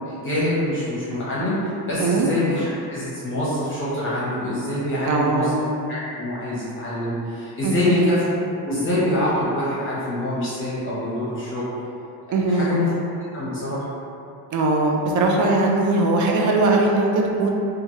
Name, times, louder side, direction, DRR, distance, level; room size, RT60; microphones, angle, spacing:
voice 1, 0.2-5.6 5.9-11.6 12.5-12.9 13.3-13.9, left 1 dB, 30° left, -9 dB, 0.7 m, -25 dB
voice 2, 5.1-5.6 7.6-8.1 12.3-12.7 14.5-17.5, right 2 dB, 50° right, 0 dB, 0.4 m, -20 dB
2.9 x 2.3 x 2.6 m, 2.7 s
cardioid pair, 135°, 41 cm